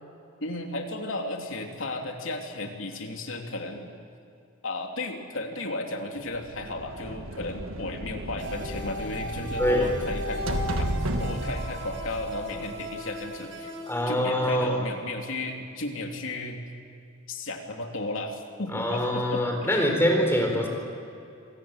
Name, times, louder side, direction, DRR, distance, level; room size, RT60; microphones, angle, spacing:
voice 1, 0.4-3.9 4.6-13.7 14.1-16.6 17.3-19.9 20.5-20.6, left 2 dB, 80° left, 2 dB, 3.0 m, -34 dB
sound 1, 6.3-13.1, right 1 dB, 90° right, 1.5 m, -33 dB
sound 2, 8.4-14.0, equal, 70° right, 4.9 m, -37 dB
voice 2, 13.9-14.8 18.7-20.7, equal, 10° left, 2 dB, 4.3 m, -24 dB
26.5 x 18.0 x 8.9 m, 2.5 s
head